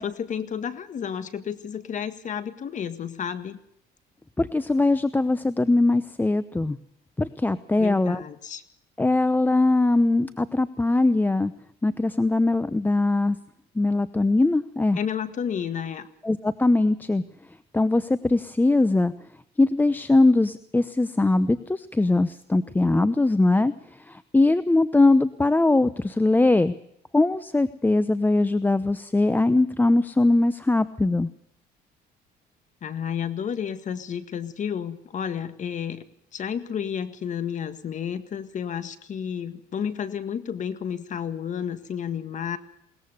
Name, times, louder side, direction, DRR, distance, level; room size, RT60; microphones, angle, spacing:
voice 1, 0.0-3.6 7.8-8.6 14.9-16.1 32.8-36.0 36.3-42.6, left 8 dB, 45° left, 11 dB, 1.8 m, -31 dB
voice 2, 4.4-6.8 7.2-8.2 9.0-11.5 11.8-13.4 13.8-15.0 16.2-17.2 17.7-19.1 19.6-23.7 24.0-26.7 27.1-31.3, left 2 dB, 10° left, 14 dB, 0.8 m, -21 dB
21.5 x 19.5 x 6.8 m, 0.73 s
cardioid pair, 110°, 17 cm